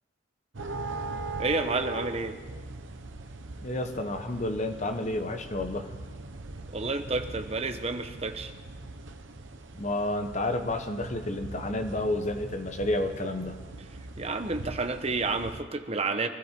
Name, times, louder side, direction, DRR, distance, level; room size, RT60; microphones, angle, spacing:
sound 1, 0.5-15.6, right 2 dB, 65° right, 1.0 m, -41 dB
voice 1, 1.4-2.4 6.7-8.5 14.2-16.3, right 3 dB, 30° right, 7 dB, 0.9 m, -30 dB
voice 2, 3.6-5.9 9.7-13.6, left 1 dB, 35° left, 6 dB, 1.1 m, -30 dB
23.5 x 13.0 x 4.5 m, 1.3 s
head